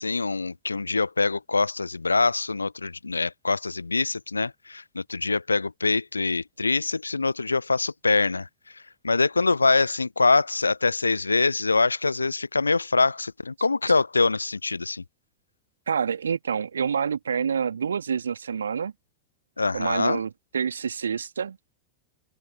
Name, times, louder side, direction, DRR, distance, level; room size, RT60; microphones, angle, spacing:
voice 1, 0.0-8.5 9.0-15.0 19.6-20.2, left 3 dB, 80° left, 0.7 m, -24 dB
voice 2, 15.9-18.9 19.7-21.6, right 7 dB, 70° right, 2.6 m, -27 dB
figure-of-eight pair, 90°, 0 cm